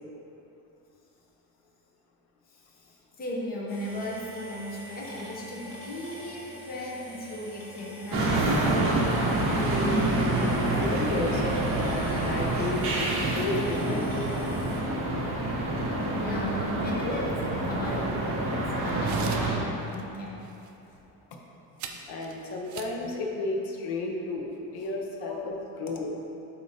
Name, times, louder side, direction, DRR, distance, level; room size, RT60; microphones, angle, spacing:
voice 1, 2.7-8.6 16.1-20.4 25.2-25.4, left 1 dB, 25° left, -4 dB, 0.8 m, -36 dB
sound 1, 3.7-14.8, left 1 dB, 50° left, 1.2 m, -45 dB
sound 2, 8.1-19.5, right 2 dB, 35° right, 1.0 m, -27 dB
voice 2, 10.3-13.1 13.3-14.1 21.3-21.4 22.1-26.1, left 2 dB, 85° left, 1 dB, 0.9 m, -33 dB
sound 3, 17.8-18.0 19.0-19.6 19.9-20.0 20.4-20.7 21.8-23.0, right 7 dB, 50° right, 0.4 m, -42 dB
8.0 x 2.8 x 4.9 m, 2.8 s
cardioid pair, 180°, 38 cm